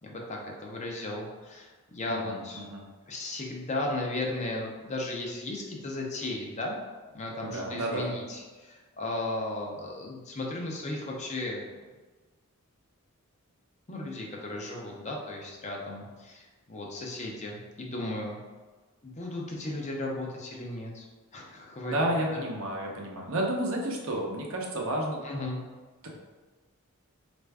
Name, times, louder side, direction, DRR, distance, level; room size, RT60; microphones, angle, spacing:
voice 1, 0.0-2.6 3.1-6.8 7.1-11.6 13.9-16.4 16.7-18.4 19.0-21.1 21.3-22.0 22.3-22.4 25.2-25.6, left 2 dB, 35° left, -1 dB, 0.6 m, -35 dB
voice 2, 2.1-2.9 7.4-8.1 21.9-25.2 26.0-26.1, right 1 dB, 65° right, -1 dB, 0.7 m, -31 dB
4.4 x 2.5 x 3.4 m, 1.3 s
head